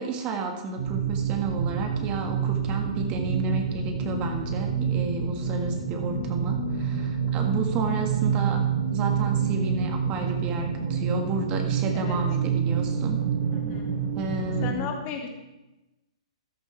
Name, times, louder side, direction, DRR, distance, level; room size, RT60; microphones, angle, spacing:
voice 1, 0.0-8.6 8.9-13.2 14.1-14.9, right 3 dB, 30° right, 3 dB, 1.6 m, -31 dB
sound 1, 0.8-14.7, right 6 dB, 70° right, 3.0 m, -27 dB
voice 2, 13.5-13.9 14.6-15.3, left 7 dB, 35° left, 2 dB, 2.1 m, -34 dB
13.5 x 10.5 x 3.4 m, 1.0 s
hypercardioid pair, 130°, 3 cm